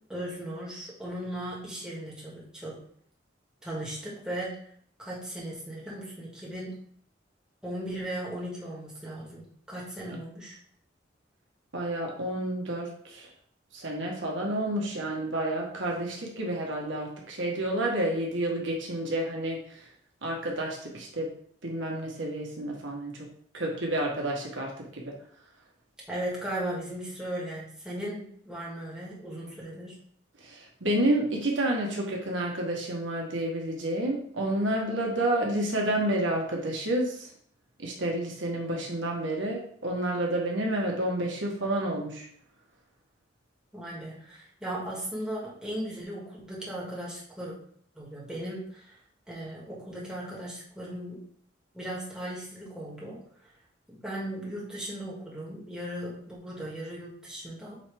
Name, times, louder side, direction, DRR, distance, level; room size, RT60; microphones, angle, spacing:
voice 1, 0.1-2.8 3.6-4.6 5.0-6.8 7.6-10.6 26.1-29.9 43.7-47.5 48.0-48.8 49.3-51.2 51.7-53.2 53.9-57.8, right 1 dB, 5° right, -6 dB, 1.9 m, -37 dB
voice 2, 11.7-13.3 13.7-19.9 20.2-21.3 21.6-23.3 23.5-25.2 30.4-37.3 37.8-42.2, right 1 dB, 80° right, -1 dB, 1.3 m, -30 dB
8.1 x 3.3 x 3.5 m, 0.62 s
head